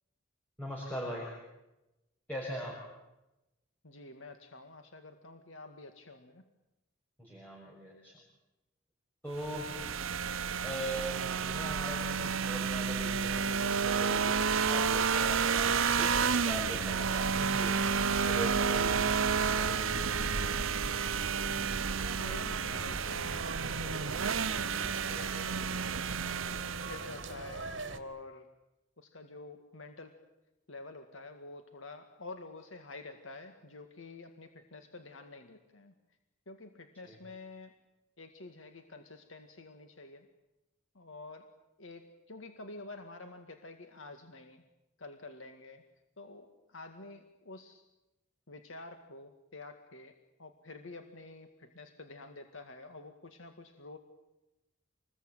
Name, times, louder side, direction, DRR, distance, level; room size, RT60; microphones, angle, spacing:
voice 1, 0.6-1.3 2.3-2.8 7.2-8.2 9.2-9.7 10.6-17.8 18.3-20.1 37.0-37.2, equal, 5° left, -4 dB, 6.8 m, -41 dB
voice 2, 3.8-6.4 15.6-15.8 22.0-26.3 26.9-28.4 29.0-30.1 30.7-35.9 36.5-37.7 38.2-40.3 41.0-41.5 41.8-44.6 45.0-45.8 46.2-47.8 48.5-50.1 50.4-54.0, left 2 dB, 75° left, 6 dB, 2.0 m, -48 dB
sound 1, 9.4-27.2, right 6 dB, 85° right, 1.0 m, -31 dB
sound 2, 22.6-28.0, right 3 dB, 65° right, 2.4 m, -43 dB
27.0 x 21.0 x 9.2 m, 0.97 s
head